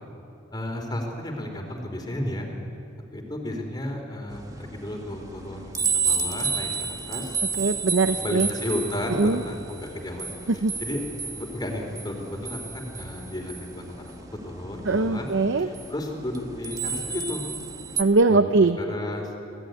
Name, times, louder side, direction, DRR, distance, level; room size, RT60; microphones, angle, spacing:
voice 1, 0.5-2.5 3.1-6.7 7.1-7.3 8.0-11.0 11.3-15.3 15.6-17.4 17.9-18.4 18.8-19.5, left 1 dB, 20° left, 2 dB, 3.4 m, -33 dB
sound 1, 4.3-18.0, right 5 dB, 20° right, 1.4 m, -32 dB
voice 2, 7.6-8.5 9.2-9.4 10.6-10.7 14.8-15.7 18.0-18.8, right 3 dB, 75° right, 10 dB, 0.7 m, -21 dB
26.0 x 18.0 x 9.3 m, 2.8 s
head